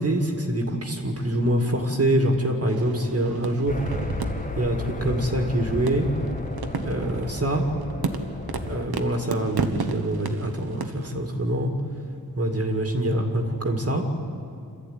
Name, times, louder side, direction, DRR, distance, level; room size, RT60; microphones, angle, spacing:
voice 1, 0.0-3.8 4.6-6.1 6.8-7.7 8.7-11.7 12.4-14.0, right 1 dB, 40° right, 3 dB, 2.1 m, -25 dB
sound 1, 2.7-11.1, right 4 dB, 70° right, 1.4 m, -33 dB
sound 2, 3.7-8.8, left 2 dB, 20° left, 1.4 m, -33 dB
27.0 x 13.5 x 9.4 m, 2.4 s
wide cardioid pair, 110°, 39 cm